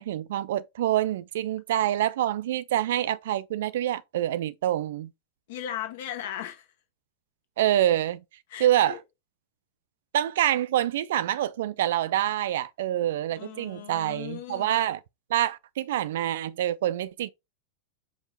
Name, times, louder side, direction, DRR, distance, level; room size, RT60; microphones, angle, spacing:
voice 1, 0.0-5.1 7.6-8.2 8.6-9.0 10.1-15.0 15.3-17.3, right 12 dB, 55° right, 0.3 m, -26 dB
voice 2, 5.5-6.7 8.5-9.0 13.3-14.7, left 11 dB, 55° left, 1.1 m, -37 dB
5.3 x 2.4 x 4.1 m
figure-of-eight pair, 90°, 0 cm